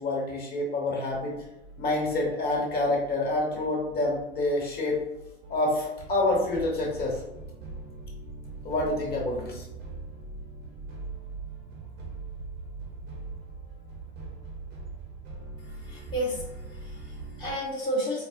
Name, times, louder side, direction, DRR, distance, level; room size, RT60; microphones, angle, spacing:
voice 1, 0.0-1.4 1.8-5.0 5.5-7.2 8.6-9.6, left 2 dB, 30° left, -2 dB, 1.1 m, -27 dB
sound 1, 1.1-17.6, right 3 dB, 35° right, 0.8 m, -42 dB
voice 2, 15.6-18.2, equal, 15° left, -7 dB, 0.8 m, -32 dB
4.1 x 2.0 x 2.5 m, 0.93 s
figure-of-eight pair, 80°, 33 cm